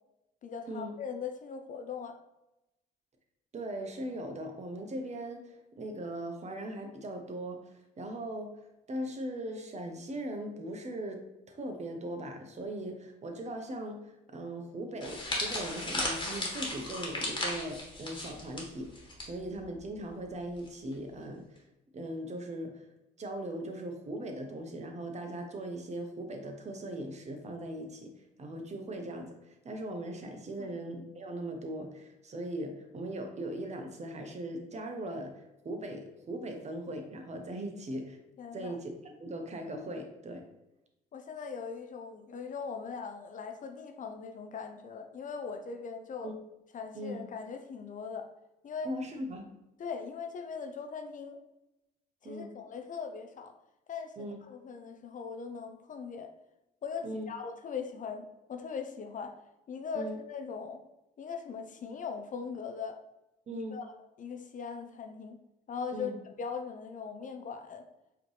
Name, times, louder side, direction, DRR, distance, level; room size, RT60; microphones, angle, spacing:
voice 1, 0.4-2.2 30.6-30.8 38.4-38.8 41.1-46.3 46.7-48.3 48.6-48.9 49.8-51.4 52.2-53.5 53.9-56.3 56.8-59.4 59.7-60.8 61.2-63.0 63.5-63.9 64.2-65.4 65.7-66.1 66.4-67.9, left 5 dB, 45° left, 6 dB, 0.6 m, -40 dB
voice 2, 3.5-8.6 8.9-21.6 21.9-22.9 23.2-38.2 38.5-40.5 46.2-46.4 46.9-47.2 48.8-49.5 52.2-52.6 54.2-54.4 57.0-57.3 59.9-60.2 63.5-63.8 65.9-66.2, right 1 dB, 40° right, 4 dB, 0.9 m, -39 dB
sound 1, 15.0-19.3 19.5-19.8 20.7-20.9, left 1 dB, 25° left, 1.5 m, -35 dB
4.9 x 3.0 x 3.2 m, 0.93 s
supercardioid pair, 75°, 19 cm